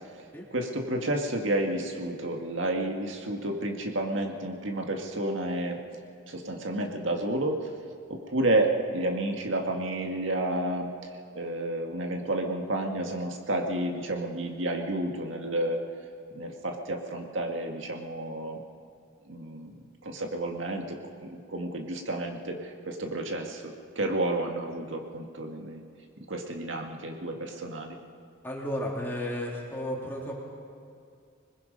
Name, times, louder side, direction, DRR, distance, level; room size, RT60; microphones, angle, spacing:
voice 1, 0.5-5.8 6.3-7.7 8.1-10.9 11.3-15.8 16.4-18.6 19.3-19.8 20.0-25.8 26.2-28.0, right 1 dB, 75° right, 2 dB, 1.9 m, -31 dB
voice 2, 28.4-30.3, left 1 dB, 10° left, -3 dB, 3.3 m, -33 dB
26.5 x 20.5 x 5.3 m, 2.4 s
head